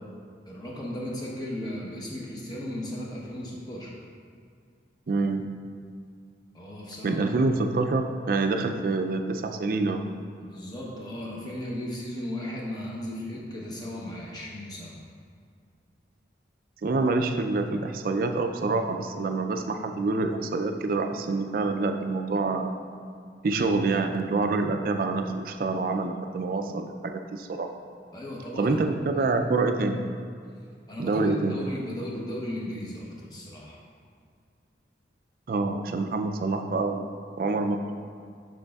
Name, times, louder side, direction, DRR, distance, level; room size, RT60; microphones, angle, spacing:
voice 1, 0.5-3.9 6.5-7.3 8.6-8.7 10.4-15.0 28.1-28.8 29.2-29.3 30.9-33.8, left 1 dB, 20° left, -3 dB, 0.9 m, -36 dB
voice 2, 5.1-5.5 7.0-10.1 16.8-22.8 23.4-27.7 28.6-30.0 31.0-31.6 35.5-37.1 37.4-37.9, right 3 dB, 50° right, 6 dB, 0.4 m, -26 dB
6.5 x 6.3 x 2.3 m, 2.2 s
head